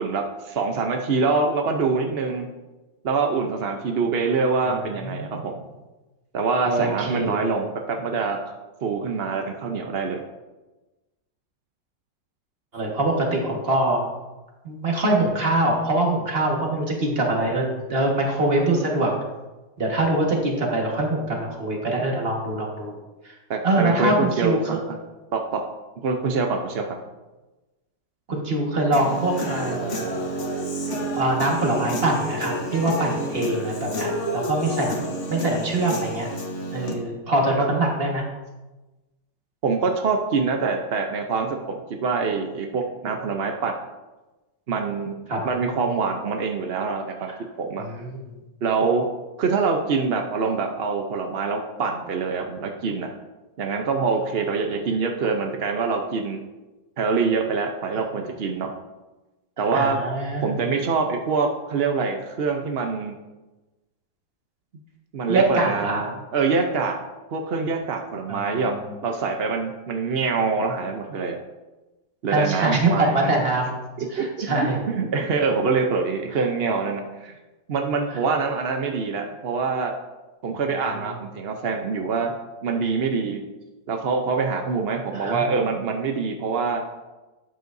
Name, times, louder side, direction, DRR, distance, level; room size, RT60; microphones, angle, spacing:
voice 1, 0.0-2.5 3.0-5.5 6.3-8.4 8.8-10.2 23.5-25.0 25.3-25.6 26.0-26.8 37.6-37.7 39.6-41.7 42.0-43.7 44.7-45.2 45.4-47.3 47.6-47.8 48.6-49.0 49.4-53.1 53.6-56.4 57.0-58.7 59.6-60.0 60.4-63.1 65.1-67.0 67.3-68.8 69.0-71.4 72.2-73.4 74.0-77.4 77.7-79.9 80.4-82.3 82.6-83.4 83.9-86.8, right 4 dB, 60° right, 3 dB, 0.6 m, -25 dB
voice 2, 5.0-5.3 6.6-7.5 12.7-14.0 14.6-17.6 17.9-19.1 19.8-22.9 23.2-23.3 23.6-24.6 28.3-30.0 31.1-35.0 35.3-36.3 36.7-38.2 45.3-45.4 47.8-48.3 59.7-60.7 65.3-66.0 68.3-68.9 72.3-73.7 74.1-74.8 80.5-80.6 80.9-81.1 85.1-85.4, right 2 dB, 35° right, 0 dB, 1.7 m, -23 dB
Human voice / Guitar, 28.9-36.9, right 1 dB, 45° left, 1.3 m, -30 dB
11.5 x 8.1 x 2.6 m, 1.1 s
omnidirectional pair, 2.0 m